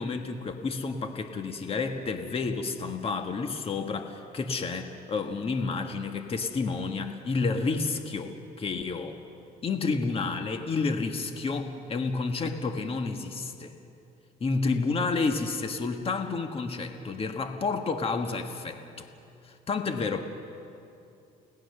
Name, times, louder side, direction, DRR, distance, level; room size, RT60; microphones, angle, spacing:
voice 1, 0.0-9.2 9.6-13.8 14.4-19.1 19.4-20.2, left 4 dB, 35° left, 6 dB, 1.5 m, -30 dB
30.0 x 18.5 x 6.7 m, 2.6 s
cardioid pair, 110°, 17 cm